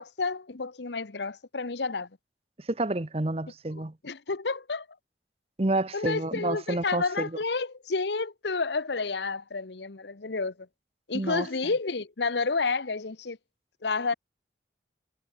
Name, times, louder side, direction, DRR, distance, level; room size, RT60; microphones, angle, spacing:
voice 1, 0.0-2.1 3.7-4.9 5.9-10.5 11.1-13.4 13.8-14.1, left 4 dB, 75° left, 1.0 m, -30 dB
voice 2, 2.7-3.9 5.6-7.3 11.1-11.5, right 2 dB, 35° right, 0.9 m, -29 dB
head